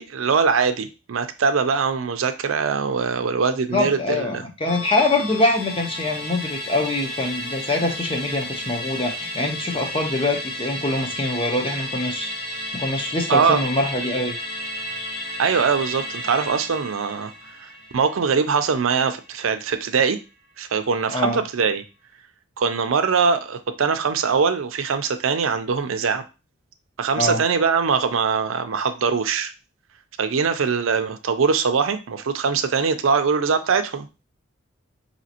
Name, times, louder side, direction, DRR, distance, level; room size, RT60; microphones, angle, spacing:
voice 1, 0.0-4.4 13.3-13.6 15.4-17.3 17.6-20.2 20.6-21.8 22.6-26.2 27.0-29.5 30.2-34.1, right 5 dB, 85° right, 0.5 m, -22 dB
voice 2, 3.7-12.3 12.7-14.3 21.1-21.4 27.1-27.4, left 2 dB, 25° left, 0.8 m, -24 dB
Musical instrument, 4.7-19.3 19.7-19.8, left 1 dB, 50° left, 0.8 m, -33 dB
5.1 x 2.8 x 2.8 m
head